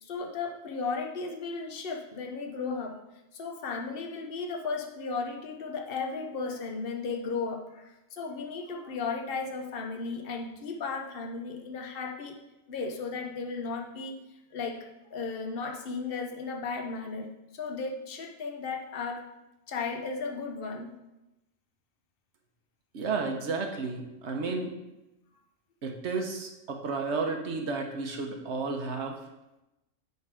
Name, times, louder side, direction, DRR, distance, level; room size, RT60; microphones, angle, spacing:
voice 1, 0.0-3.0 3.3-12.4 12.7-14.1 14.5-14.8 15.1-19.2 19.7-20.9, left 4 dB, 50° left, 2 dB, 1.0 m, -35 dB
voice 2, 22.9-24.7 25.8-29.2, right 4 dB, 60° right, 3 dB, 1.1 m, -32 dB
9.3 x 3.6 x 4.8 m, 0.96 s
omnidirectional pair, 1.4 m